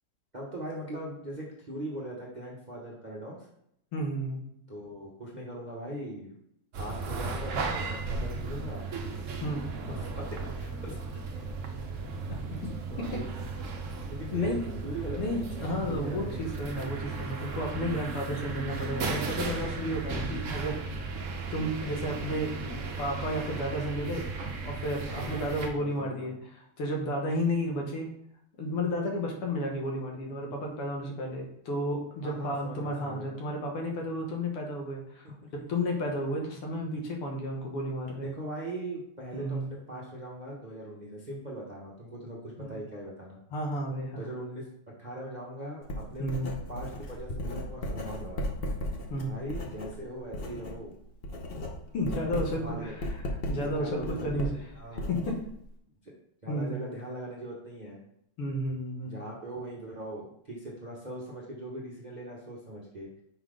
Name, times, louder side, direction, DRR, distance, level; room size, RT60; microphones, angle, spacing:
voice 1, 0.3-3.4 4.7-6.4 6.8-8.9 9.9-11.0 12.9-13.2 14.1-16.4 25.1-26.3 32.2-33.3 35.2-35.5 38.2-43.4 44.1-44.6 45.0-46.3 46.7-48.4 49.2-50.9 52.2-53.0 53.6-55.1 56.0-56.1 56.4-58.0 59.0-63.1, right 1 dB, 35° right, -4 dB, 0.7 m, -40 dB
voice 2, 3.9-4.4 9.4-9.6 12.3-12.4 14.3-14.6 15.2-21.2 21.5-28.1 28.6-35.3 35.7-38.3 39.3-39.7 42.6-42.7 43.5-44.2 46.2-46.5 49.1-49.3 51.9-53.1 53.5-54.5 55.1-55.4 56.5-56.7 58.4-59.1, equal, 85° left, 0 dB, 2.2 m, -32 dB
sound 1, 6.7-25.7, right 3 dB, 75° right, 0.7 m, -35 dB
Writing, 45.8-50.8 51.1-55.7, left 1 dB, 65° left, 0.5 m, -36 dB
5.8 x 3.9 x 5.0 m, 0.74 s
omnidirectional pair, 2.4 m